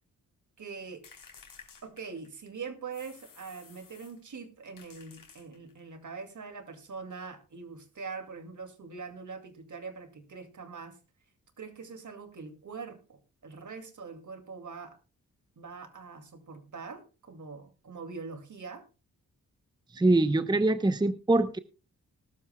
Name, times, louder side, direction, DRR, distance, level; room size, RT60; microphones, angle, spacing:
voice 1, 0.6-1.0 1.8-11.0 11.6-15.0 15.6-18.8, right 5 dB, 55° right, 2.4 m, -43 dB
sound 1, 1.0-2.5 2.9-4.2 4.8-5.9, left 5 dB, 65° left, 3.6 m, -54 dB
voice 2, 19.9-21.6, right 2 dB, 10° right, 0.8 m, -24 dB
19.5 x 12.5 x 2.2 m
cardioid pair, 60°, 35 cm